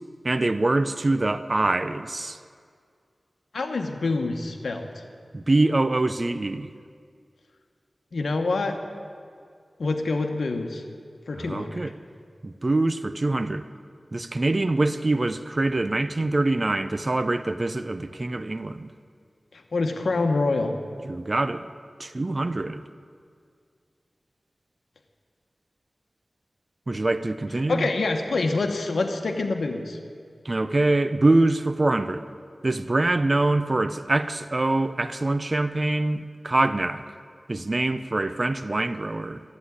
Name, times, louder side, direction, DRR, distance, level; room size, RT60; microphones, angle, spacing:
voice 1, 0.2-2.4 5.3-6.7 11.4-11.9 12.4-13.6 14.1-18.9 21.0-21.7 22.0-22.8 26.9-27.9 30.4-32.2 32.6-37.0 37.5-39.4, right 2 dB, 45° right, 12 dB, 0.5 m, -24 dB
voice 2, 3.5-4.9 8.1-8.8 9.8-10.8 11.3-11.8 19.5-20.8 27.7-30.0, left 3 dB, 90° left, 4 dB, 1.0 m, -26 dB
11.5 x 8.2 x 9.7 m, 2.2 s
wide cardioid pair, 55°, 0 cm